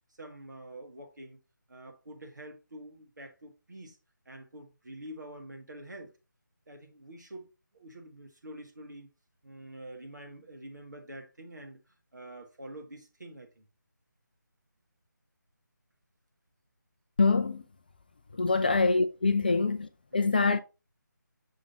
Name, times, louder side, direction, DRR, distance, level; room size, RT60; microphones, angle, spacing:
voice 1, 0.2-1.4 1.7-4.0 4.3-6.1 6.7-7.5 7.7-9.1 9.4-13.6 18.6-18.8 19.4-19.6 20.1-20.3, right 1 dB, 65° right, 1.7 m, -46 dB
voice 2, 17.2-17.6 18.4-20.6, left 4 dB, 30° left, 0.3 m, -25 dB
6.3 x 5.2 x 2.9 m
figure-of-eight pair, 155°, 11 cm